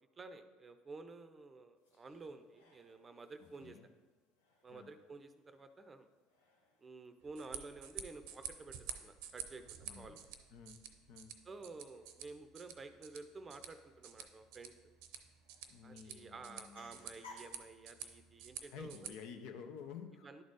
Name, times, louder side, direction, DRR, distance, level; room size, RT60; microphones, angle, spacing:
voice 1, 0.2-3.8 4.6-6.1 6.8-10.2 11.4-14.7 15.8-19.2 20.2-20.4, right 3 dB, 25° right, 10 dB, 0.6 m, -52 dB
sound 1, 1.8-19.9, left 3 dB, 85° left, 1.1 m, -66 dB
voice 2, 3.4-3.9 4.7-4.9 9.8-10.2 10.5-10.8 11.1-11.3 15.7-17.0 18.7-20.3, left 7 dB, 65° left, 7 dB, 0.7 m, -51 dB
sound 2, 7.2-19.1, right 9 dB, 70° right, 0.6 m, -50 dB
10.5 x 4.2 x 4.7 m, 1.3 s
hypercardioid pair, 70°, 0 cm